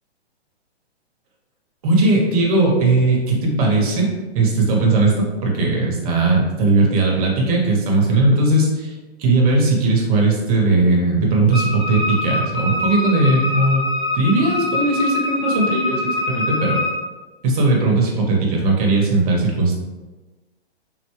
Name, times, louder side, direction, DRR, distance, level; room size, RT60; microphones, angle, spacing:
voice 1, 1.8-4.1 4.3-8.9 9.2-13.8 14.1-16.0 16.3-16.8 17.4-19.8, right 2 dB, 35° right, -1 dB, 0.8 m, -18 dB
Wind instrument woodwind instrument, 11.5-17.0, left 2 dB, 25° left, 0.6 m, -24 dB
3.8 x 2.2 x 3.0 m, 1.2 s
hypercardioid pair, 145°, 32 cm